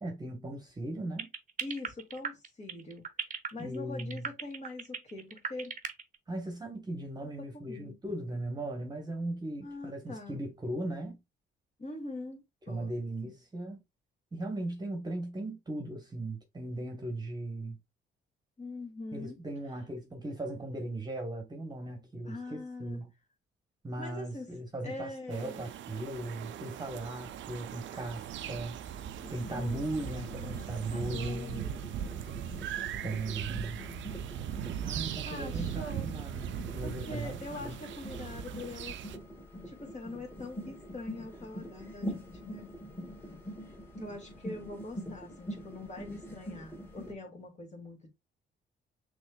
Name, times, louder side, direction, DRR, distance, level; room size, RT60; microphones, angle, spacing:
voice 1, 0.0-1.3 3.6-4.3 6.3-11.2 12.7-13.8 14.3-17.8 19.1-23.1 23.8-28.8 29.3-31.6 33.0-33.8 34.8-37.8, right 2 dB, 20° right, 1.2 m, -38 dB
sound 1, 1.2-6.2, right 6 dB, 40° right, 0.9 m, -36 dB
voice 2, 1.6-3.0 3.5-5.8 7.2-7.9 9.6-10.4 11.8-12.9 13.2-13.3 18.6-19.4 19.7-19.8 22.3-23.0 24.0-24.5 24.8-25.7 29.5-29.8 30.3-30.6 30.9-32.3 32.8-34.1 34.9-36.1 36.8-39.0 39.7-42.8 44.0-48.1, left 2 dB, 35° left, 2.2 m, -43 dB
sound 2, 25.3-39.2, right 9 dB, 70° right, 0.5 m, -39 dB
sound 3, 29.2-47.1, equal, 10° left, 2.1 m, -45 dB
6.1 x 3.3 x 2.4 m
cardioid pair, 90°, 20 cm